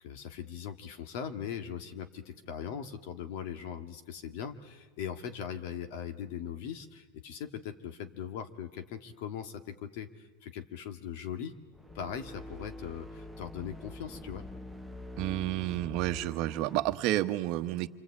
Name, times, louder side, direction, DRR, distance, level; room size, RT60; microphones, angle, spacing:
voice 1, 0.0-11.5 11.9-14.4, left 8 dB, 60° left, 7 dB, 1.9 m, -40 dB
sound 1, 11.7-17.0, left 1 dB, 5° left, 0.9 m, -45 dB
voice 2, 15.2-17.9, right 15 dB, 45° right, 8 dB, 1.2 m, -30 dB
28.0 x 24.0 x 8.6 m, 1.3 s
supercardioid pair, 145°, 0 cm